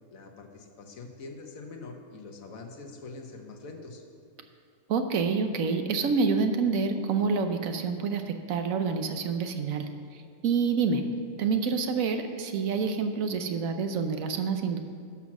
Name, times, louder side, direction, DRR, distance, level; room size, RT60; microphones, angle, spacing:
voice 1, 0.1-4.0, left 3 dB, 75° left, 3 dB, 1.5 m, -44 dB
voice 2, 4.9-9.9 10.4-11.0 11.4-14.8, right 5 dB, 75° right, 7 dB, 1.2 m, -27 dB
11.0 x 6.0 x 6.0 m, 2.4 s
omnidirectional pair, 1.4 m